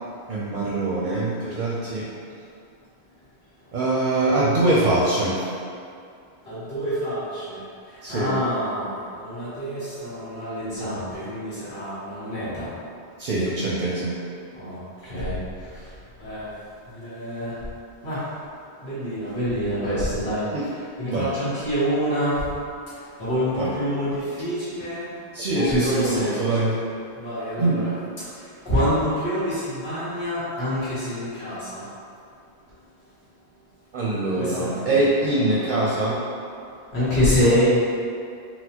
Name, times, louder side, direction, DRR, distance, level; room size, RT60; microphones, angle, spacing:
voice 1, 0.3-2.1 3.7-5.5 8.0-8.3 13.2-14.1 20.5-20.6 21.0-21.2 23.6-23.7 25.3-26.7 27.6-27.8 33.9-36.2, right 2 dB, 60° right, -5 dB, 0.6 m, -23 dB
voice 2, 6.5-7.6 8.1-12.7 14.5-15.3 16.2-16.5 16.9-17.5 18.0-18.2 18.8-20.4 21.0-22.5 23.2-25.1 25.5-26.7 27.2-27.9 28.6-31.8 34.4-35.6 36.9-37.8, equal, 75° left, -13 dB, 1.4 m, -26 dB
4.1 x 2.0 x 2.8 m, 2.4 s
omnidirectional pair, 1.1 m